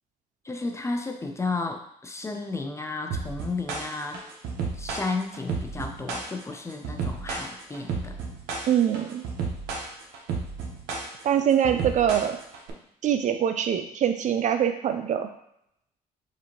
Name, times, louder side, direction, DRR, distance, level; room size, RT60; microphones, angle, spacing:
voice 1, 0.4-4.2 4.8-8.2, left 3 dB, 15° left, 4 dB, 0.5 m, -33 dB
sound 1, 3.1-12.7, right 4 dB, 75° right, 0.8 m, -32 dB
voice 2, 8.7-9.2 11.2-12.4 13.0-15.3, right 9 dB, 45° right, 7 dB, 0.4 m, -23 dB
5.1 x 2.7 x 2.9 m, 0.76 s
cardioid pair, 110°, 17 cm